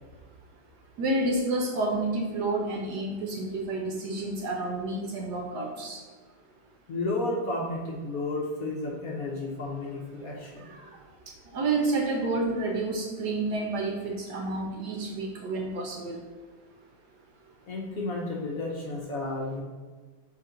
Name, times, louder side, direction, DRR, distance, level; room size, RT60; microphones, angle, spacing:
voice 1, 1.0-6.0 10.6-11.0 11.5-16.2, right 2 dB, 65° right, 1 dB, 1.1 m, -29 dB
voice 2, 6.9-10.7 17.7-19.6, left 2 dB, 55° left, -2 dB, 1.1 m, -32 dB
6.7 x 3.2 x 5.1 m, 1.4 s
omnidirectional pair, 2.2 m